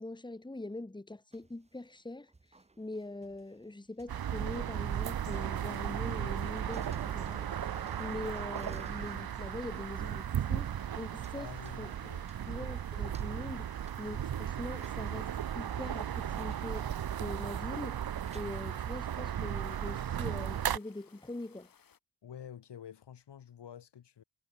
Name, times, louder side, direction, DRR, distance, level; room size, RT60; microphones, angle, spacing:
voice 1, 0.0-2.3 2.8-7.7 8.0-11.9 12.5-13.7 14.0-15.3 15.6-16.9 17.2-18.1 18.3-21.7, left 2 dB, 10° left, 2.8 m, -43 dB
sound 1, 1.3-6.2 6.4-9.8 10.1-10.2 11.2-11.3 11.7-12.7 13.1-19.6, right 3 dB, 15° right, 1.3 m, -55 dB
sound 2, 4.1-20.8, right 10 dB, 60° right, 1.1 m, -36 dB
Stream, 4.7-22.0, left 7 dB, 55° left, 3.5 m, -63 dB
voice 2, 11.3-12.3 22.2-24.2, left 9 dB, 80° left, 5.2 m, -48 dB
wide cardioid pair, 135°, 41 cm